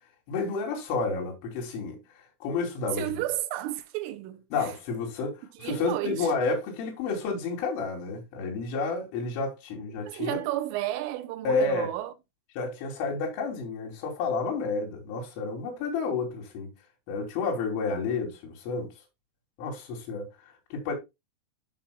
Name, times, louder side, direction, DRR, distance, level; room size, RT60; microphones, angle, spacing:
voice 1, 0.3-2.0 2.4-3.2 4.5-10.4 11.5-11.9 12.6-16.7 17.1-18.9 19.6-20.3 20.7-20.9, left 4 dB, 75° left, 5.3 m, -30 dB
voice 2, 3.0-4.7 5.6-6.3 10.0-12.1, right 14 dB, 90° right, 3.5 m, -32 dB
13.5 x 5.7 x 2.2 m
omnidirectional pair, 5.7 m